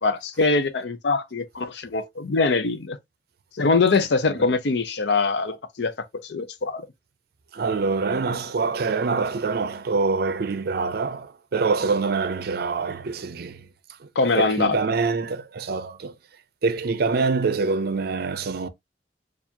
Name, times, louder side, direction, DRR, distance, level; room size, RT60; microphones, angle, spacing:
voice 1, 0.0-3.0 3.5-5.9 6.2-6.8 14.2-14.8, left 3 dB, 70° left, 0.6 m, -23 dB
voice 2, 7.5-13.7 14.0-14.1 14.4-16.1 16.6-18.7, right 4 dB, 60° right, 0.5 m, -25 dB
4.4 x 2.4 x 2.7 m
head